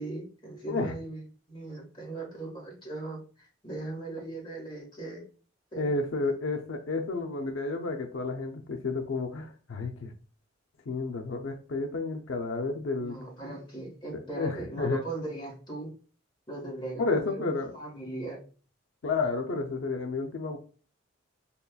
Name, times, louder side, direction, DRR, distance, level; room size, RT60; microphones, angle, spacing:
voice 1, 0.0-5.2 5.7-5.9 12.9-15.9 16.5-18.4, right 2 dB, 20° left, -2 dB, 1.3 m, -39 dB
voice 2, 5.8-10.1 10.9-13.2 14.4-15.0 17.0-17.8 19.0-20.6, left 3 dB, 70° left, 3 dB, 0.5 m, -31 dB
5.3 x 2.3 x 2.2 m, 0.39 s
head